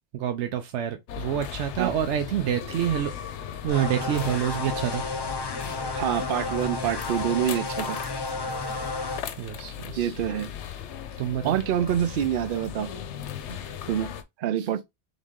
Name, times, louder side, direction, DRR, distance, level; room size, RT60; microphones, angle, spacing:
voice 1, 0.1-3.1 3.6-5.0 9.4-10.1 11.2-11.6 14.6-14.7, right 10 dB, 85° right, 0.9 m, -27 dB
sound 1, 1.1-14.2, left 9 dB, 90° left, 0.9 m, -37 dB
sound 2, 3.7-9.2, left 3 dB, 35° left, 0.4 m, -32 dB
voice 2, 5.9-8.0 10.0-10.5 11.4-12.9 13.9-14.1 14.4-14.8, right 10 dB, 60° right, 0.7 m, -26 dB
3.7 x 3.1 x 3.6 m
omnidirectional pair, 1.1 m